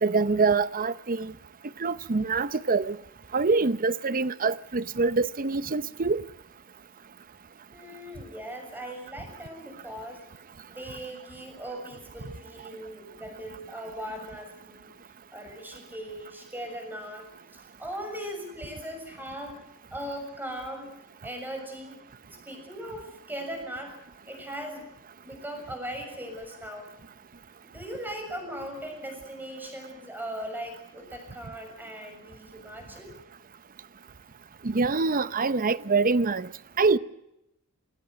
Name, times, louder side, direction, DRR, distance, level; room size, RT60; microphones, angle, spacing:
voice 1, 0.0-1.3 1.8-3.0 3.3-6.2 34.6-36.5 36.8-37.0, right 4 dB, 40° right, 0.8 m, -25 dB
voice 2, 7.7-10.2 10.7-14.9 15.3-19.6 19.9-20.9 21.2-22.0 22.4-24.0 24.3-24.9 25.2-26.9 27.6-33.2, equal, 10° right, 6.7 m, -39 dB
20.0 x 19.0 x 9.3 m
head